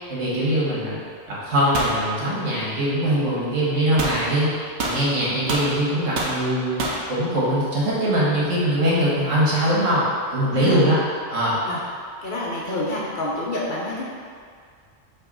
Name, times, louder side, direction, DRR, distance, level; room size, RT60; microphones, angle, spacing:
voice 1, 0.1-1.0 1.3-4.5 4.8-6.8 7.1-10.0 10.3-11.0 11.3-11.6, right 1 dB, 85° right, -7 dB, 1.9 m, -22 dB
sound 1, 1.7-2.0 4.0-4.2 4.8-5.7 6.2-6.4 6.8-7.0, right 2 dB, 65° right, 1.1 m, -26 dB
voice 2, 10.5-10.8 11.6-11.8 12.2-14.1, left 1 dB, 45° left, -5 dB, 1.0 m, -29 dB
5.8 x 3.3 x 5.4 m, 2.1 s
omnidirectional pair, 1.3 m